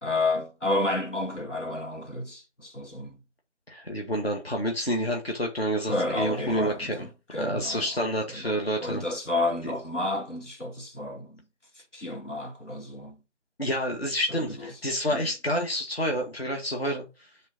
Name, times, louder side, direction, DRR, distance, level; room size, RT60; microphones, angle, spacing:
voice 1, 0.0-3.2 5.9-7.8 8.3-11.4 11.8-13.2 14.3-14.6 15.1-15.3, left 2 dB, 85° left, 2.6 m, -31 dB
voice 2, 3.7-7.1 7.3-9.0 13.6-17.3, equal, 55° left, 1.9 m, -29 dB
7.1 x 4.1 x 5.3 m
figure-of-eight pair, 175°, 35 cm